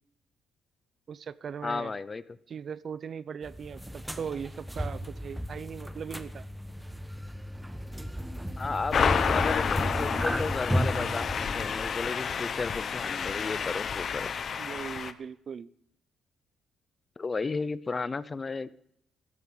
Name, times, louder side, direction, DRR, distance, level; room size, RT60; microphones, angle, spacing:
voice 1, 1.1-1.9 2.5-6.5 14.6-15.7, right 7 dB, 50° right, 18 dB, 0.6 m, -39 dB
voice 2, 1.6-2.2 8.6-14.3 17.2-18.7, left 4 dB, 30° left, 17 dB, 0.8 m, -34 dB
sound 1, 3.4-11.9, equal, 5° right, 1.2 m, -34 dB
sound 2, 8.9-15.1, left 6 dB, 50° left, 1.0 m, -30 dB
15.0 x 8.4 x 9.7 m, 0.73 s
cardioid pair, 90°, 0 cm